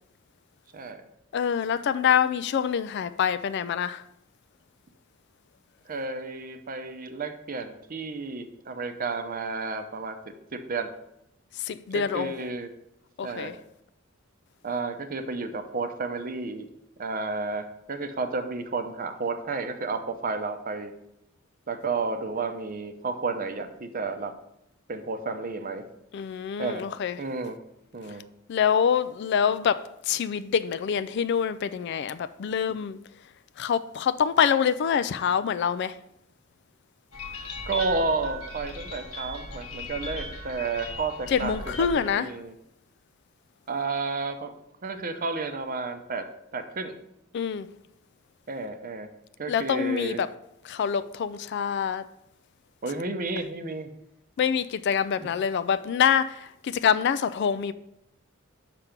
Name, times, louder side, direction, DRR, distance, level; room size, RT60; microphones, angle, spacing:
voice 1, 1.3-4.0 11.6-12.4 13.2-13.5 26.1-27.2 28.5-33.0 33.6-36.0 41.3-42.3 47.3-47.7 49.5-50.3 50.6-52.0 54.4-57.7, left 7 dB, 55° left, 0.3 m, -25 dB
voice 2, 5.9-10.2 10.5-10.9 11.9-12.7 13.2-13.6 14.6-16.7 17.0-20.9 21.7-24.3 24.9-25.8 26.6-26.8 27.2-27.6 27.9-28.2 37.7-42.5 43.7-44.5 44.8-46.3 46.5-47.0 48.5-49.1 49.4-50.2 52.8-53.9 55.2-55.3, right 3 dB, 40° right, 0.7 m, -31 dB
sound 1, 37.1-42.1, left 1 dB, 80° left, 1.0 m, -38 dB
5.9 x 5.9 x 5.1 m
head